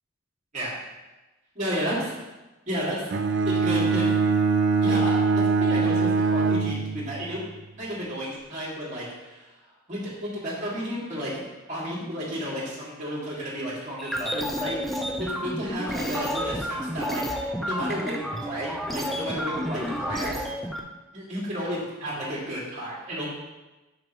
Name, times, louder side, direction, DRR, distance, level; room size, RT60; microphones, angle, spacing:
voice 1, 1.5-2.1 2.7-3.1 3.4-4.1 4.8-7.4 7.8-9.4 9.9-11.3 11.7-14.8 15.4-20.5 21.1-23.3, equal, 35° right, -7 dB, 2.4 m, -32 dB
Bowed string instrument, 3.1-7.4, right 4 dB, 55° right, 0.4 m, -23 dB
sound 1, 14.0-20.8, equal, ahead, 0.4 m, -30 dB
6.8 x 6.7 x 3.0 m, 1.1 s
head